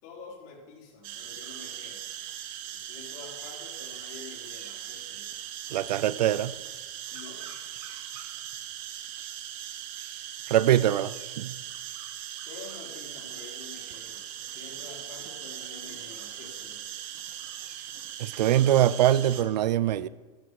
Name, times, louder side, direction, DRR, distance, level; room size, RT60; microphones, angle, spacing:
voice 1, 0.0-2.0 2.7-5.3 7.1-7.4 12.5-16.8, left 4 dB, 45° left, -2 dB, 4.5 m, -47 dB
sound 1, 1.0-19.4, right 11 dB, 55° right, 1.5 m, -40 dB
voice 2, 5.7-6.5 10.5-11.6 18.2-20.1, right 12 dB, 90° right, 18 dB, 0.6 m, -23 dB
14.5 x 12.5 x 4.7 m, 1.3 s
supercardioid pair, 135°, 21 cm